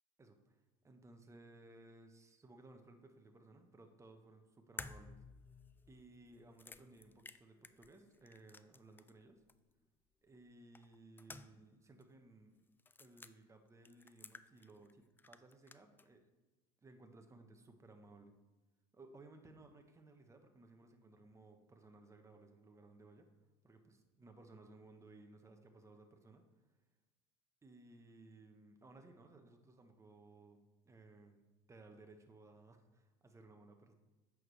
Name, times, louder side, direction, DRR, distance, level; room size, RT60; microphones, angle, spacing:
voice 1, 0.2-5.2 5.9-9.4 10.2-12.6 13.0-16.2 16.8-18.4 18.9-23.3 23.6-26.4 27.6-33.9, right 2 dB, 20° right, 5 dB, 1.1 m, -60 dB
sound 1, 4.8-9.2 9.5-9.6 10.7-11.7 12.0-12.1 12.8-13.3 13.8-14.9 15.2-16.1, left 4 dB, 15° left, 0.3 m, -54 dB
8.5 x 6.4 x 3.3 m, 1.1 s
supercardioid pair, 85°, 16 cm